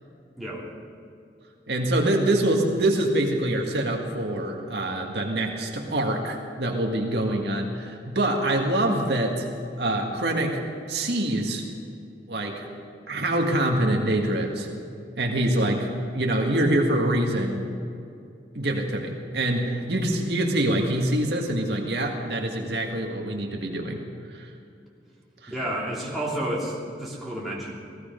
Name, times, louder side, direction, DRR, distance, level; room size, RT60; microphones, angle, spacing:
voice 1, 1.7-9.5 9.8-10.6 10.9-11.6 12.3-12.7 13.1-14.7 15.2-17.6 18.5-24.0 24.3-24.5 25.4-25.5, right 1 dB, 70° right, 1 dB, 1.9 m, -25 dB
voice 2, 25.5-27.7, right 1 dB, ahead, -7 dB, 3.1 m, -30 dB
16.5 x 16.0 x 5.2 m, 2.5 s
head